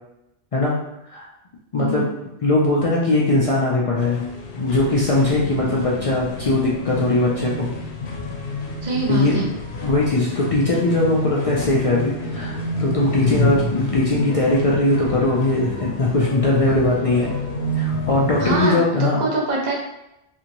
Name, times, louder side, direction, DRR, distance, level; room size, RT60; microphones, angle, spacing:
voice 1, 1.7-2.1 2.4-4.2 4.5-7.7 9.1-9.5 9.8-17.3 17.8-19.2, left 2 dB, 55° left, -4 dB, 0.4 m, -20 dB
sound 1, 4.0-18.7, left 1 dB, 85° left, 0.9 m, -29 dB
voice 2, 8.8-9.5 18.4-19.7, right 3 dB, 50° right, -2 dB, 0.6 m, -24 dB
2.9 x 2.6 x 2.6 m, 0.89 s
omnidirectional pair, 1.1 m